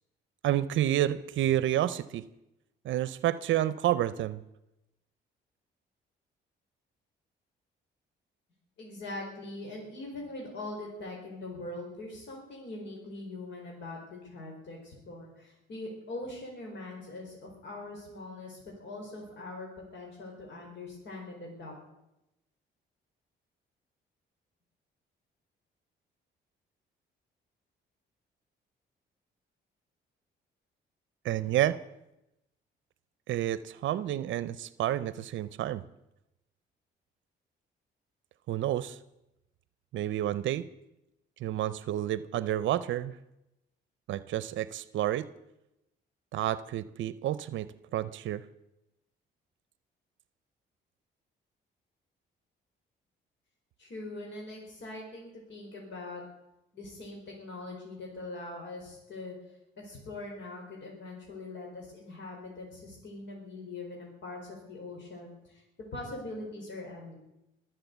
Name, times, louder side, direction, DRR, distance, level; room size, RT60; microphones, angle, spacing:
voice 1, 0.4-2.2 2.8-4.4 31.2-31.8 33.3-35.8 38.5-39.0 39.9-40.7 41.4-43.2 44.1-45.3 46.3-48.4, right 12 dB, 75° right, 16 dB, 0.6 m, -29 dB
voice 2, 8.8-21.7 53.8-56.2 56.7-59.3 59.8-65.6 65.9-67.1, left 2 dB, 65° left, -1 dB, 4.7 m, -42 dB
22.5 x 7.7 x 8.0 m, 0.90 s
cardioid pair, 90°, 20 cm